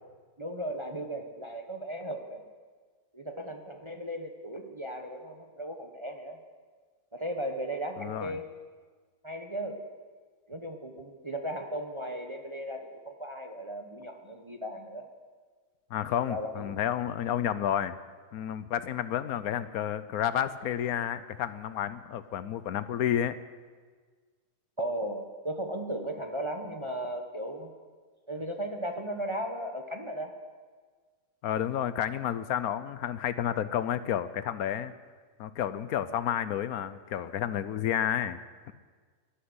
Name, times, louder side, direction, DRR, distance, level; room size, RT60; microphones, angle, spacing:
voice 1, 0.4-2.4 3.1-6.4 7.1-8.5 9.2-9.8 10.5-15.1 16.3-16.7 24.8-27.7 28.3-30.3, right 1 dB, 20° right, 4 dB, 0.9 m, -36 dB
voice 2, 8.0-8.4 15.9-18.0 18.3-23.4 31.4-34.9 35.4-38.4, left 10 dB, 75° left, 14 dB, 1.1 m, -30 dB
12.0 x 11.5 x 9.6 m, 1.5 s
omnidirectional pair, 1.6 m